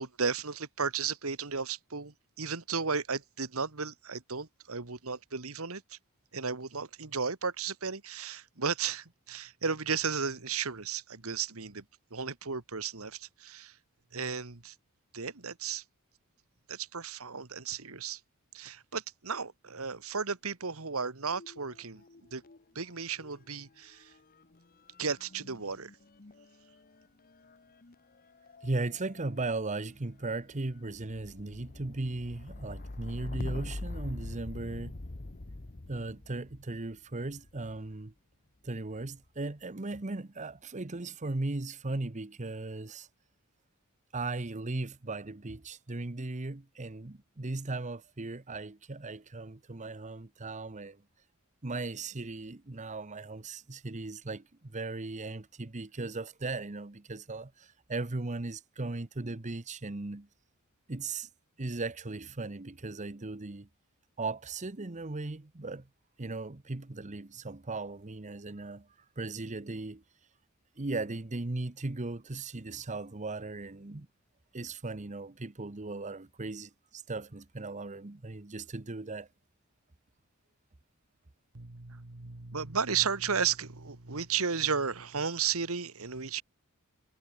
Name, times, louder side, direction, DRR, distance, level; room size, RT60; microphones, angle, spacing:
voice 1, 0.0-6.0 6.3-11.8 12.1-13.7 14.1-14.7 15.1-15.8 16.7-18.2 18.5-22.0 22.3-22.4 22.8-24.1 25.0-25.9 81.5-86.4, right 6 dB, 70° right, 1.8 m, -34 dB
sound 1, 21.3-22.6 22.9-37.9 38.7-39.3, left 2 dB, 40° left, 1.1 m, -45 dB
voice 2, 28.6-35.0 35.9-38.1 38.6-43.1 44.1-51.0 51.6-60.3 60.9-61.3 61.6-63.7 64.2-65.9 66.2-68.9 69.2-70.0 70.8-74.1 74.5-79.3, right 2 dB, 35° right, 1.0 m, -37 dB
head